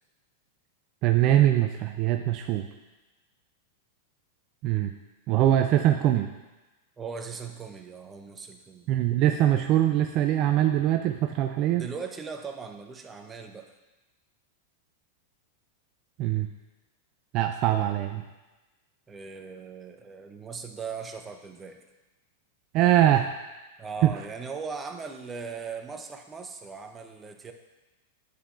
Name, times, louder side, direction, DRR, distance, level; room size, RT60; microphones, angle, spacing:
voice 1, 1.0-2.6 4.6-4.9 5.3-6.3 8.9-11.9 16.2-16.5 17.3-18.2 22.7-23.3 24.0-24.1, right 12 dB, 45° right, 6 dB, 0.4 m, -22 dB
voice 2, 7.0-8.9 11.7-13.7 19.1-21.8 23.8-27.5, right 5 dB, 20° right, 5 dB, 0.8 m, -39 dB
9.5 x 8.3 x 2.5 m, 1.1 s
hypercardioid pair, 100°, 0 cm